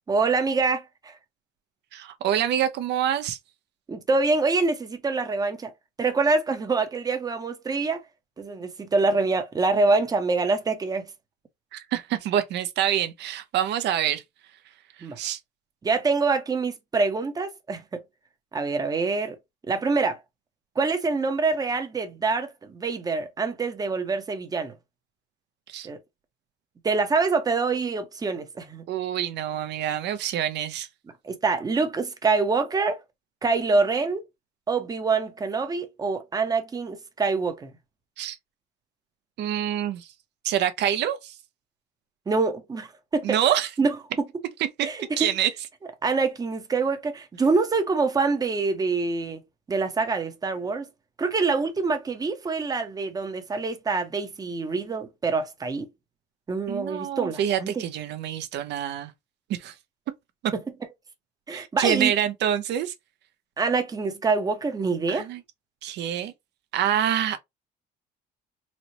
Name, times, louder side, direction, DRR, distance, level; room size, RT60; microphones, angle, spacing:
voice 1, 0.1-1.1 3.9-5.7 6.0-8.0 8.4-11.1 15.0-15.2 15.8-18.0 18.5-19.4 19.7-20.2 20.8-24.7 25.8-26.0 26.8-28.8 31.2-33.0 33.4-34.3 34.7-37.7 42.3-42.9 43.1-43.4 43.8-44.0 44.8-45.3 46.0-49.4 49.7-50.9 51.2-55.9 56.5-57.9 60.5-60.6 61.5-62.1 63.6-65.3, right 4 dB, 20° right, 0.7 m, -25 dB
voice 2, 1.9-3.4 11.7-14.2 15.2-15.4 25.7-25.9 28.9-30.9 38.2-38.4 39.4-40.1 40.4-41.3 43.2-43.7 44.8-44.9 45.2-45.5 56.7-59.1 59.5-59.7 60.4-60.5 61.5-62.9 65.1-65.4 65.8-66.3 66.7-67.4, right 10 dB, 70° right, 0.7 m, -26 dB
4.1 x 2.0 x 2.9 m
cardioid pair, 140°, 18 cm